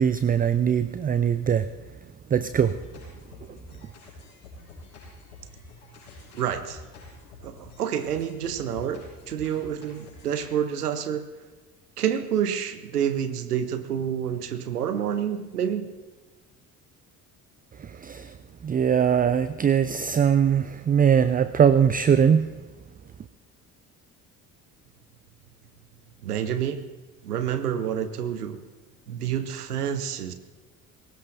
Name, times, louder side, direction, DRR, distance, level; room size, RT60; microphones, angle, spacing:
voice 1, 0.0-1.7 2.3-2.8 17.8-18.3 18.6-22.4, right 8 dB, 20° right, 13 dB, 0.5 m, -21 dB
sound 1, 2.4-10.4, left 2 dB, 80° left, 5.2 m, -47 dB
voice 2, 6.3-6.8 7.4-11.3 12.0-15.9 26.2-26.8 27.2-28.6 29.1-30.3, right 9 dB, 85° right, 11 dB, 0.9 m, -28 dB
21.5 x 18.5 x 2.6 m, 1.3 s
figure-of-eight pair, 50°, 45 cm